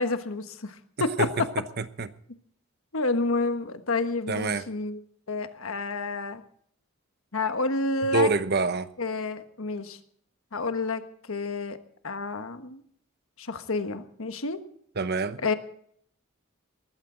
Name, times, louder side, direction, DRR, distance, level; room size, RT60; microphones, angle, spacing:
voice 1, 0.0-1.5 2.9-5.0 5.3-6.4 7.3-8.3 9.0-10.0 10.5-11.0 11.3-11.8 12.0-12.8 13.4-14.6 15.4-15.5, left 3 dB, 75° left, 1.4 m, -29 dB
voice 2, 1.8-2.1 4.3-4.6 8.1-8.9 15.0-15.4, right 3 dB, 50° right, 0.9 m, -26 dB
20.0 x 15.0 x 3.9 m
head